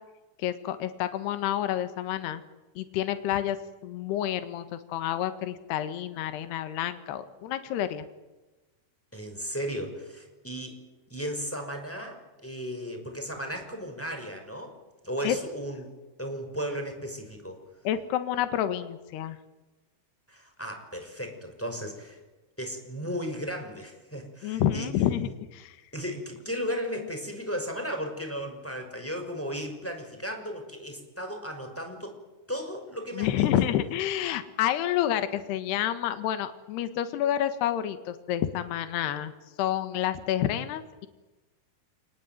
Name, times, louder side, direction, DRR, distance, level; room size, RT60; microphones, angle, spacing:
voice 1, 0.4-2.4 2.8-3.6 3.8-8.0 15.2-15.4 17.8-19.4 24.4-25.8 33.1-39.3 39.6-41.1, left 11 dB, 80° left, 10 dB, 3.5 m, -29 dB
voice 2, 9.1-14.8 15.0-15.9 16.2-17.6 20.3-22.2 22.6-25.0 25.9-32.2 32.5-33.5, equal, 5° left, 4 dB, 5.7 m, -35 dB
29.5 x 20.0 x 9.3 m, 1.1 s
omnidirectional pair, 4.8 m